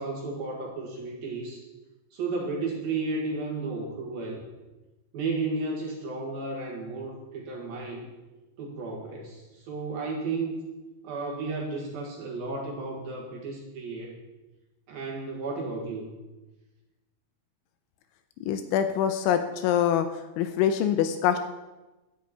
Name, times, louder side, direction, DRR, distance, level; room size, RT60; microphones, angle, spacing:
voice 1, 0.0-1.6 2.1-4.4 5.1-8.1 8.6-10.7 11.0-14.2 14.9-16.2, right 3 dB, 60° right, -1 dB, 2.9 m, -33 dB
voice 2, 18.5-20.1 20.4-21.4, left 9 dB, 80° left, 8 dB, 2.9 m, -24 dB
11.0 x 7.4 x 8.8 m, 1.1 s
omnidirectional pair, 5.8 m